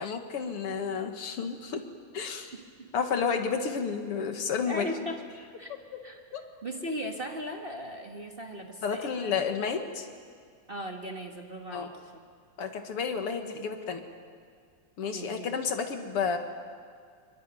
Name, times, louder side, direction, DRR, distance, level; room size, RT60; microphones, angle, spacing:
voice 1, 0.0-1.8 2.1-2.5 2.9-4.9 6.3-6.4 8.8-10.1 11.7-11.9 12.6-14.0 15.0-16.4, left 6 dB, 50° left, 5 dB, 2.2 m, -31 dB
voice 2, 2.5-2.9 4.7-5.2 5.6-5.7 6.0-6.3 6.6-9.3 10.7-12.1 15.1-15.5, equal, 40° right, 2 dB, 0.8 m, -38 dB
23.0 x 22.5 x 9.2 m, 2.1 s
omnidirectional pair, 3.8 m